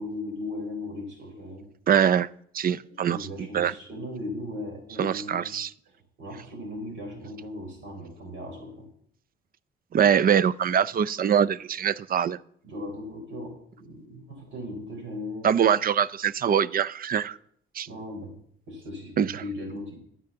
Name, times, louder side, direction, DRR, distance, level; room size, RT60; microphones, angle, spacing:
voice 1, 0.0-1.7 2.8-5.5 5.9-8.9 12.6-15.8 17.9-18.4 18.7-20.0, left 1 dB, 70° right, 2 dB, 4.5 m, -37 dB
voice 2, 1.9-2.3 2.5-3.2 3.5-3.7 5.0-5.7 9.9-12.4 15.4-17.4 17.8-17.9 19.2-19.3, right 8 dB, 45° right, 20 dB, 0.5 m, -23 dB
10.5 x 7.4 x 6.8 m, 0.63 s
cardioid pair, 90°, 20 cm